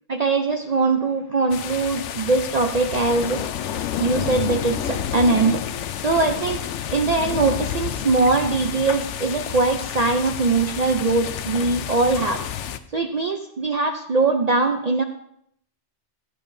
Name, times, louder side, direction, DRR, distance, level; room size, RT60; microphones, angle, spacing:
voice 1, 0.1-3.4 4.0-5.7 6.0-12.5 12.9-15.0, right 3 dB, 50° right, 6 dB, 0.5 m, -21 dB
sound 1, 1.5-12.8, left 9 dB, 85° left, 0.9 m, -30 dB
14.5 x 8.9 x 2.6 m, 0.70 s
omnidirectional pair, 1.2 m